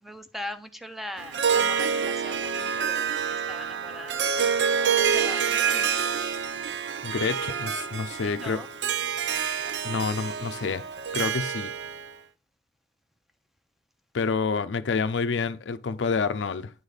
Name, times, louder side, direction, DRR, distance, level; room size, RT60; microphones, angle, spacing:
voice 1, 0.0-3.1 3.5-4.4 4.9-5.9 8.2-8.7, left 1 dB, ahead, 0.7 m, -40 dB
Harp, 1.2-12.1, right 7 dB, 75° right, 0.6 m, -27 dB
voice 2, 7.0-8.6 9.8-10.8 11.1-11.7 14.1-16.7, left 5 dB, 85° left, 0.5 m, -28 dB
9.5 x 4.1 x 4.9 m
head